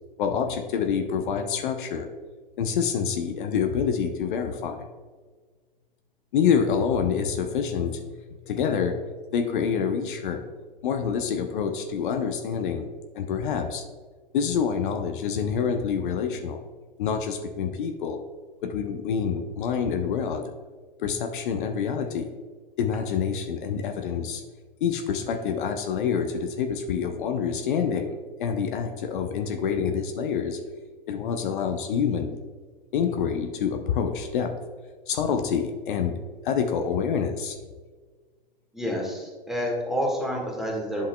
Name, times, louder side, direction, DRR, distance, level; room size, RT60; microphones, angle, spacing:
voice 1, 0.2-2.1 2.6-4.9 6.3-8.2 8.5-9.0 9.3-10.4 10.8-12.9 13.1-13.8 14.3-16.6 17.0-18.2 18.6-20.4 21.0-22.3 22.8-24.4 24.8-28.1 28.4-30.6 31.1-32.4 32.9-34.5 35.1-37.6, left 7 dB, 60° left, 5 dB, 0.7 m, -27 dB
voice 2, 38.7-41.1, equal, ahead, -1 dB, 1.5 m, -28 dB
10.5 x 5.6 x 2.2 m, 1.4 s
figure-of-eight pair, 100°, 29 cm